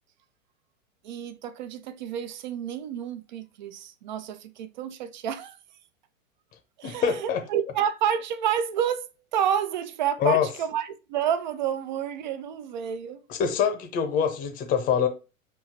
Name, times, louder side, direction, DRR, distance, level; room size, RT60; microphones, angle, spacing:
voice 1, 1.0-5.6 6.8-13.2, right 9 dB, 35° right, 0.4 m, -29 dB
voice 2, 6.8-7.4 10.2-10.5 13.3-15.1, left 7 dB, 20° left, 0.7 m, -24 dB
6.7 x 2.7 x 2.8 m
figure-of-eight pair, 100°, 42 cm